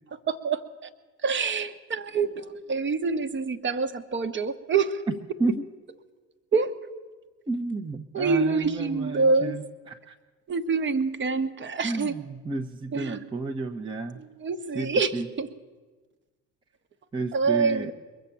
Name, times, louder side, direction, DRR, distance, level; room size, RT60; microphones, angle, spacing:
voice 1, 0.3-0.9 1.2-5.0 6.5-6.7 8.1-9.6 10.5-12.1 12.9-13.2 14.4-15.1 15.4-15.5 17.3-17.9, right 4 dB, 30° right, 8 dB, 1.1 m, -26 dB
voice 2, 7.5-10.1 11.8-14.2 14.7-15.3 17.1-17.9, right 3 dB, 15° right, 3 dB, 0.8 m, -31 dB
22.5 x 7.5 x 7.0 m, 1.3 s
figure-of-eight pair, 60°, 36 cm